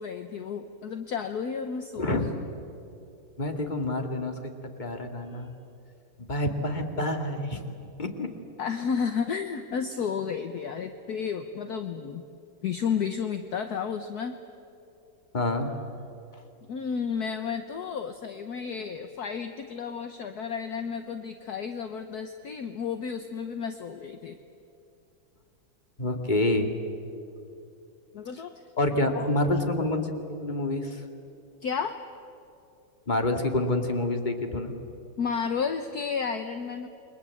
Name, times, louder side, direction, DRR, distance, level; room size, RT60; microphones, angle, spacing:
voice 1, 0.0-2.3 8.6-12.2 12.6-14.4 16.7-24.4 28.1-28.5 29.1-29.3 31.6-32.0 35.2-36.9, left 6 dB, 55° left, 8 dB, 1.4 m, -32 dB
voice 2, 3.4-4.4 4.8-5.5 6.3-7.6 8.0-8.3 15.3-15.7 26.0-26.8 28.8-30.1 30.4-31.0 33.1-34.7, left 1 dB, 25° left, 5 dB, 2.2 m, -27 dB
29.0 x 23.0 x 8.4 m, 2.6 s
omnidirectional pair, 2.1 m